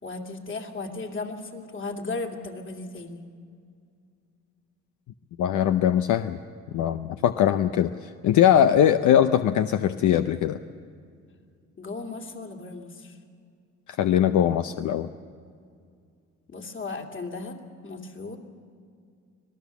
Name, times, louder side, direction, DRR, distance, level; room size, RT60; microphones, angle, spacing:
voice 1, 0.0-3.3 11.8-13.2 16.5-18.4, left 3 dB, 40° left, 2 dB, 2.6 m, -36 dB
voice 2, 5.4-6.4 6.7-7.9 8.2-10.6 14.0-15.1, left 10 dB, 75° left, 9 dB, 0.7 m, -21 dB
25.5 x 18.0 x 7.1 m, 2.3 s
cardioid pair, 90°, 30 cm